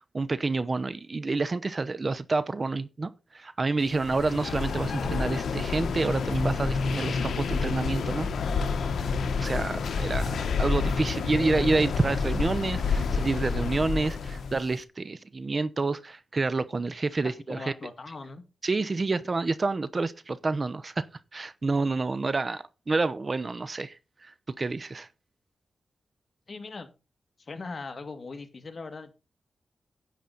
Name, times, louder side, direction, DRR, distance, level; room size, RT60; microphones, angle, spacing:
voice 1, 0.1-8.3 8.6-8.7 9.4-17.7 18.6-21.1 21.3-25.1, right 3 dB, 40° right, 0.8 m, -28 dB
sound 1, 3.9-14.7, left 5 dB, 85° left, 1.1 m, -29 dB
voice 2, 17.2-18.4 26.5-26.9 27.4-29.1, left 3 dB, 50° left, 2.1 m, -40 dB
10.5 x 9.1 x 4.0 m
cardioid pair, 65°, 0 cm